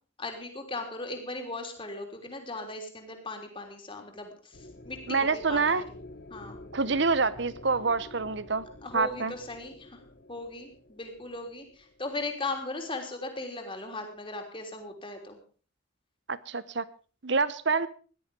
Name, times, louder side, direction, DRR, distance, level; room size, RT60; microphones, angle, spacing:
voice 1, 0.2-6.0 6.3-6.6 8.8-10.0 10.3-15.4, left 2 dB, 25° left, 3.4 m, -38 dB
sound 1, 4.5-12.6, left 1 dB, 50° left, 1.2 m, -49 dB
voice 2, 5.1-5.8 6.7-8.7 8.9-9.3 16.3-16.8 17.2-17.9, right 4 dB, 60° right, 0.9 m, -26 dB
17.0 x 12.0 x 5.3 m
head